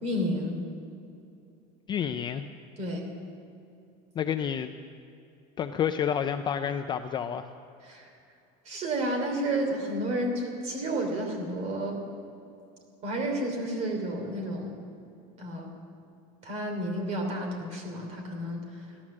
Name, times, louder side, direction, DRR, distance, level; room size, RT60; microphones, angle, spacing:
voice 1, 0.0-0.6 2.8-3.1 7.8-8.1 8.6-12.0 13.0-14.8 15.4-15.7 16.4-18.8, right 1 dB, 35° right, 2 dB, 3.1 m, -31 dB
voice 2, 1.9-2.5 4.2-4.8 5.6-7.5, left 8 dB, 25° left, 8 dB, 0.4 m, -29 dB
14.5 x 12.5 x 7.4 m, 2.6 s
cardioid pair, 170°, 20 cm